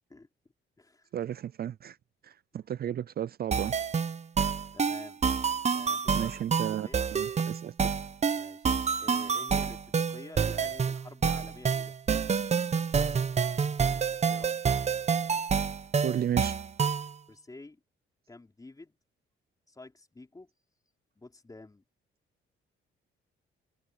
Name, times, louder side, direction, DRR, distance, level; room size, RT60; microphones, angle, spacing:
voice 1, 0.1-1.1 4.7-5.2 5.7-7.0 8.3-8.7 9.0-12.0 13.8-14.6 17.3-17.8 18.3-19.0 19.7-20.5 21.2-21.8, left 2 dB, 15° left, 4.0 m, -50 dB
voice 2, 1.1-2.0 2.2-3.7 6.1-7.9 16.0-16.5, right 10 dB, 50° right, 0.4 m, -33 dB
sound 1, 3.5-17.1, right 6 dB, 30° right, 0.8 m, -28 dB
cardioid pair, 110°, 21 cm